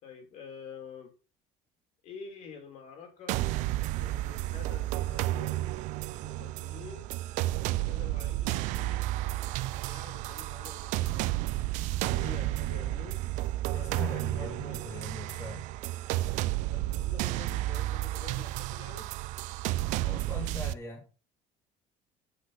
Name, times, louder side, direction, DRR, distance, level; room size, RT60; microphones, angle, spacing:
voice 1, 0.0-1.1 2.0-3.5 4.0-5.7 6.1-7.1 7.8-9.1 9.7-11.4 12.1-13.2 13.7-14.8 16.7-19.1, left 5 dB, 55° left, 4 dB, 3.2 m, -48 dB
sound 1, 3.3-20.7, right 16 dB, 65° right, 0.5 m, -32 dB
voice 2, 13.7-15.7 20.0-21.1, left 3 dB, 20° left, 0 dB, 2.1 m, -41 dB
8.2 x 6.0 x 5.7 m, 0.34 s
cardioid pair, 160°, 14 cm